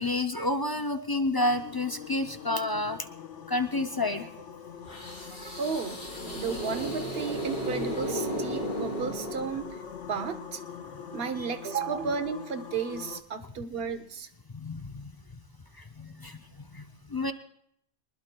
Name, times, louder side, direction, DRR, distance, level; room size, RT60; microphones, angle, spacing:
voice 1, 0.0-3.1 3.5-4.3 5.4-5.6 11.4-11.5 14.5-15.1 15.8-17.3, left 2 dB, 35° left, 7 dB, 0.3 m, -30 dB
sound 1, 1.4-13.2, left 7 dB, 90° left, 1.2 m, -43 dB
sound 2, 4.9-9.9, equal, 55° left, 4.7 m, -35 dB
voice 2, 5.6-6.0 6.3-9.7 10.1-10.6 11.1-14.3, right 6 dB, 55° right, 8 dB, 1.1 m, -33 dB
24.0 x 20.5 x 2.2 m, 0.73 s
omnidirectional pair, 1.2 m